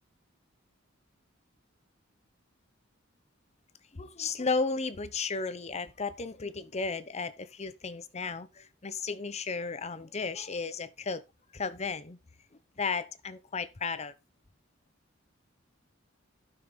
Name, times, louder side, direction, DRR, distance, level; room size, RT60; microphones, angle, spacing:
voice 1, 3.9-11.2 11.5-12.2 12.8-14.1, left 4 dB, 35° left, 0.8 m, -34 dB
12.0 x 5.8 x 3.4 m
head